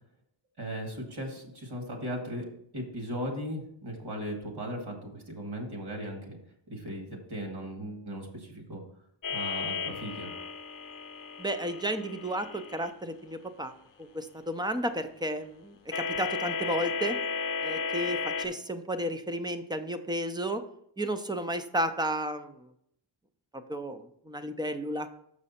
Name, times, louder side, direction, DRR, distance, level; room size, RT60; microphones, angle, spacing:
voice 1, 0.6-2.5 2.7-6.4 6.7-8.8 9.3-10.3, equal, 55° right, 2 dB, 2.0 m, -37 dB
sound 1, 9.2-12.9 15.9-18.5, left 5 dB, 45° left, 0.7 m, -34 dB
voice 2, 11.4-13.7 14.0-17.2 17.6-20.6 21.0-22.7 23.5-25.1, right 1 dB, 10° right, 9 dB, 0.4 m, -33 dB
6.6 x 6.2 x 4.2 m, 0.70 s
wide cardioid pair, 175°, 46 cm